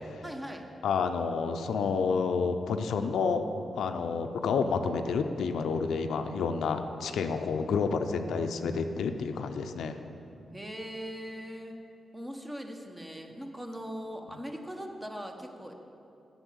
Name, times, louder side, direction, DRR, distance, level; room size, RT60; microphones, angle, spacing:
voice 1, 0.2-0.6 10.5-11.8 12.1-15.7, equal, 15° right, 3 dB, 1.1 m, -40 dB
voice 2, 0.8-3.5 3.8-10.0, left 5 dB, 85° left, 7 dB, 0.5 m, -29 dB
8.1 x 6.8 x 8.0 m, 2.8 s
cardioid pair, 75°, 0 cm